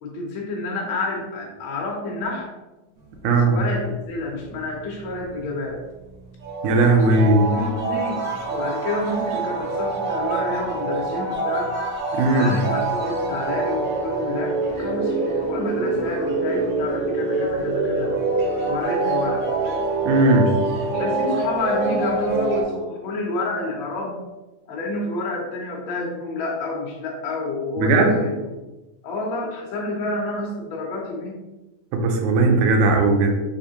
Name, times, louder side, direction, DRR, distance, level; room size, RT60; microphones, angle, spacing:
voice 1, 0.0-2.5 3.2-5.8 6.9-8.2 8.5-11.8 12.3-18.2 18.7-19.4 20.9-24.3 24.7-28.4 29.0-31.4, left 2 dB, 70° left, -1 dB, 1.2 m, -29 dB
sound 1, 3.0-4.1 4.4-5.7 6.1-6.2 6.4-22.6, right 3 dB, 65° right, 1.4 m, -25 dB
voice 2, 3.2-3.6 6.6-7.5 12.1-12.5 20.1-20.6 27.8-28.2 31.9-33.3, right 2 dB, 90° right, 3 dB, 2.1 m, -17 dB
4.6 x 3.5 x 2.8 m, 1.1 s
omnidirectional pair, 3.3 m